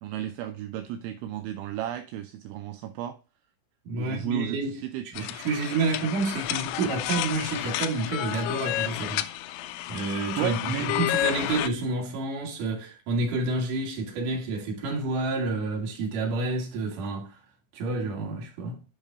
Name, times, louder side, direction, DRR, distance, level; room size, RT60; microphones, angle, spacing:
voice 1, 0.0-3.2 4.0-5.3 10.4-11.1, right 11 dB, 85° right, 2.7 m, -33 dB
voice 2, 3.8-4.8 5.0-9.3 9.9-17.4 17.7-18.8, right 3 dB, 55° right, 2.8 m, -29 dB
sound 1, 5.2-11.7, left 14 dB, 85° left, 3.2 m, -31 dB
8.3 x 5.4 x 3.6 m
omnidirectional pair, 5.9 m